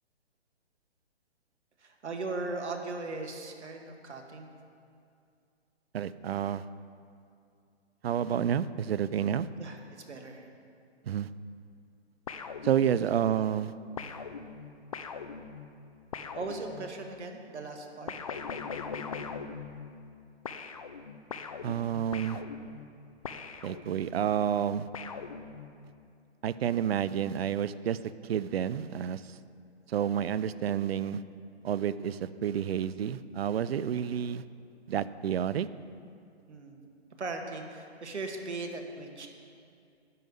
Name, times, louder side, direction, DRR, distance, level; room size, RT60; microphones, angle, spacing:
voice 1, 1.8-4.5 9.6-10.5 13.1-13.2 16.3-18.1 36.5-36.8 37.2-39.3, right 3 dB, 80° right, 3 dB, 1.7 m, -38 dB
voice 2, 5.9-6.6 8.0-9.5 11.1-11.3 12.6-13.7 21.6-22.4 23.6-24.9 26.4-28.0 28.2-29.2 29.9-31.2 31.6-34.4 34.9-35.7, right 9 dB, 65° right, 16 dB, 0.5 m, -29 dB
sound 1, 12.3-13.3 14.0-17.1 18.1-20.2 20.5-24.2 24.9-25.9, left 5 dB, 35° left, 0.4 m, -41 dB
11.0 x 5.5 x 7.9 m, 2.4 s
hypercardioid pair, 150°, 34 cm